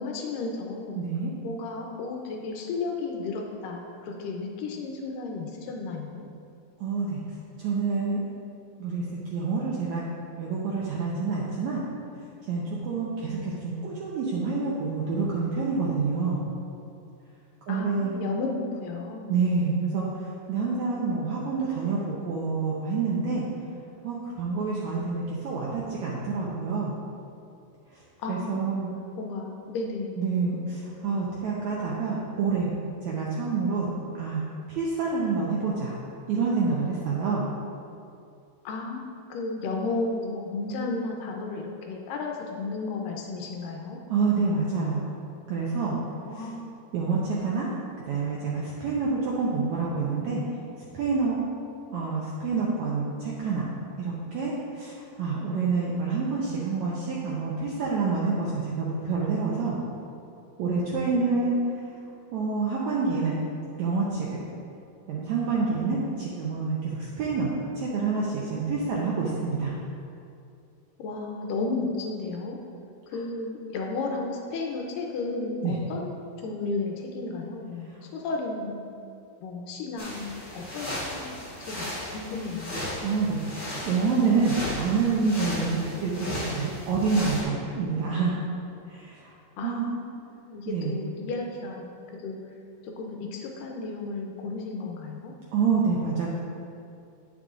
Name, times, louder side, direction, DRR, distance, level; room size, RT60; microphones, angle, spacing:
voice 1, 0.0-1.0 1.4-6.3 17.7-19.3 28.2-28.7 29.2-30.3 38.6-44.0 46.3-47.0 61.1-61.6 71.0-72.6 73.1-78.9 79.4-81.3 81.6-82.9 89.6-91.9 92.2-92.4 92.8-95.3, left 3 dB, 75° left, 1 dB, 2.1 m, -33 dB
voice 2, 1.0-1.3 6.8-7.2 7.6-8.2 8.8-9.0 9.3-10.0 10.4-11.8 12.5-16.4 17.7-18.1 19.3-20.1 20.5-23.4 24.0-26.9 28.3-28.9 30.2-32.7 33.0-33.9 34.1-35.9 36.3-37.4 44.1-45.1 45.5-45.9 46.9-47.7 48.1-50.4 50.9-51.3 51.9-53.7 54.0-54.9 55.2-59.8 60.6-61.6 62.3-63.4 63.8-64.4 65.1-69.7 75.6-75.7 83.0-88.4 88.9-89.3 89.6-89.9 90.7-90.9 95.5-96.3, right 4 dB, 80° right, -5 dB, 1.7 m, -27 dB
sound 1, 80.0-87.4, left 1 dB, 30° left, 1.2 m, -35 dB
9.3 x 8.7 x 2.5 m, 2.5 s
omnidirectional pair, 4.2 m